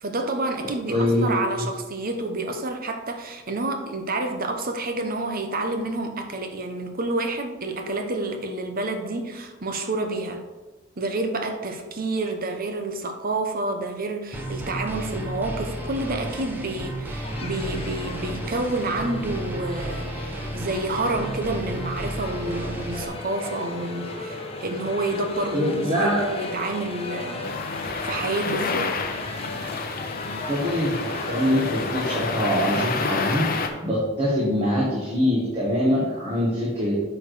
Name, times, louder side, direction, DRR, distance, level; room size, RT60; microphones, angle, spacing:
voice 1, 0.0-10.4 11.0-27.6 28.0-29.0, right 2 dB, 45° right, 5 dB, 1.0 m, -29 dB
voice 2, 0.9-1.7 25.5-26.2 30.5-36.9, equal, 30° right, -5 dB, 1.7 m, -24 dB
sound 1, 14.3-23.0, right 1 dB, 10° right, 1.1 m, -33 dB
sound 2, 17.2-33.7, left 2 dB, 30° left, 1.0 m, -36 dB
sound 3, 27.4-33.7, left 4 dB, 45° left, 0.8 m, -29 dB
8.5 x 5.0 x 5.0 m, 1.2 s
head